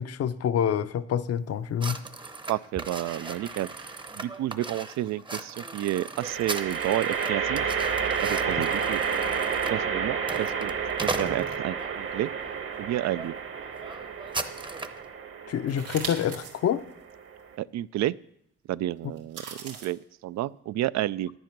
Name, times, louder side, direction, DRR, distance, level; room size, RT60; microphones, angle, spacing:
voice 1, 0.0-2.0 15.5-16.8, left 9 dB, 55° left, 13 dB, 0.7 m, -27 dB
sound 1, 1.8-11.9 12.5-12.8 13.1-13.3 13.5-15.0, right 3 dB, 15° right, 0.8 m, -37 dB
voice 2, 2.5-7.7 8.2-9.0 9.7-10.7 11.0-12.3 12.8-13.3 17.6-18.2 18.7-21.3, right 14 dB, 65° right, 19 dB, 0.4 m, -30 dB
sound 2, 3.1-3.7 6.2-17.5, right 6 dB, 45° right, 1.1 m, -31 dB
sound 3, 15.7-16.6 17.1-17.2 19.2-19.9, right 6 dB, 90° right, 2.1 m, -38 dB
10.5 x 9.2 x 5.9 m, 0.73 s
cardioid pair, 90°, 30 cm